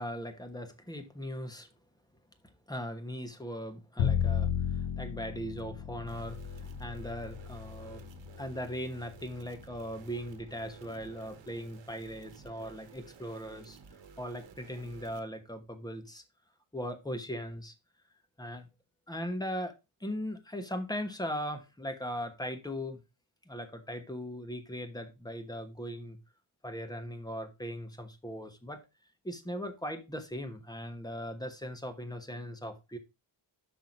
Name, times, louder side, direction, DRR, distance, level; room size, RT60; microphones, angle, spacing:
voice 1, 0.0-1.7 2.7-8.0 8.4-13.8 14.2-16.2 16.7-17.7 18.4-18.7 19.1-19.7 20.0-23.0 23.5-26.2 26.6-28.8 29.2-33.0, equal, 10° left, 1.1 m, -39 dB
Bowed string instrument, 4.0-10.1, left 9 dB, 85° left, 0.8 m, -34 dB
sound 1, 6.1-15.2, right 6 dB, 65° right, 1.2 m, -54 dB
6.1 x 5.7 x 5.3 m
wide cardioid pair, 165°, 48 cm